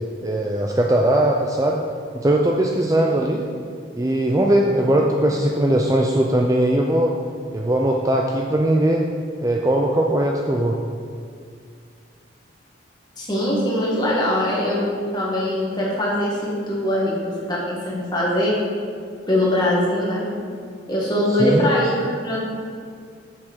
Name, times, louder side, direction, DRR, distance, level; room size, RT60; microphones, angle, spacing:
voice 1, 0.2-1.8 2.1-3.5 3.9-7.2 7.5-9.1 9.4-10.8 21.3-21.7, right 1 dB, 15° right, 0 dB, 0.4 m, -19 dB
voice 2, 13.2-18.5 19.3-20.3 20.9-22.4, left 1 dB, 20° left, -5 dB, 1.8 m, -22 dB
7.4 x 7.2 x 4.7 m, 2.2 s
head